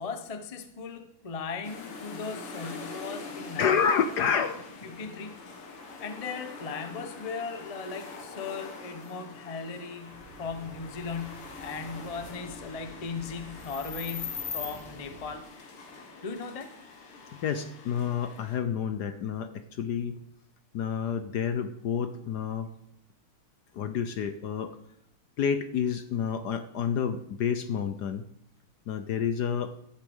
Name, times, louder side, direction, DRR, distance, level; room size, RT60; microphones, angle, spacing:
voice 1, 0.0-3.8 4.8-5.4 6.0-15.5 16.2-16.7, left 5 dB, 45° left, 8 dB, 0.4 m, -38 dB
sound 1, 1.6-18.6, left 4 dB, 90° left, 2.6 m, -43 dB
voice 2, 3.6-4.7 17.3-20.2 20.7-22.7 23.7-24.8 25.4-28.2 28.9-29.7, left 7 dB, 65° left, 10 dB, 1.1 m, -29 dB
sound 2, 10.0-15.3, right 4 dB, 85° right, 2.7 m, -52 dB
13.0 x 8.3 x 5.4 m, 0.77 s
omnidirectional pair, 2.4 m